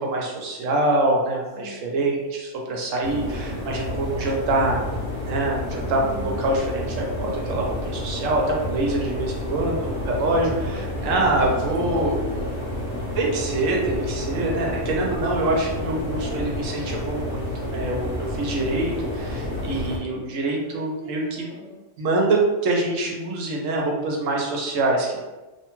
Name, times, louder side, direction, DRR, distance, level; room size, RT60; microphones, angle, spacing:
voice 1, 0.0-4.8 5.3-12.1 13.1-17.5 17.7-21.4 22.0-22.4 22.6-25.2, right 2 dB, 80° right, 0 dB, 1.0 m, -25 dB
voice 2, 1.6-2.1 5.9-6.4 10.5-12.7 15.8-16.8 20.4-21.9, left 1 dB, 20° right, -5 dB, 0.4 m, -40 dB
sound 1, 3.0-20.0, left 1 dB, 45° right, 0.8 m, -30 dB
2.8 x 2.2 x 2.9 m, 1.2 s
omnidirectional pair, 1.3 m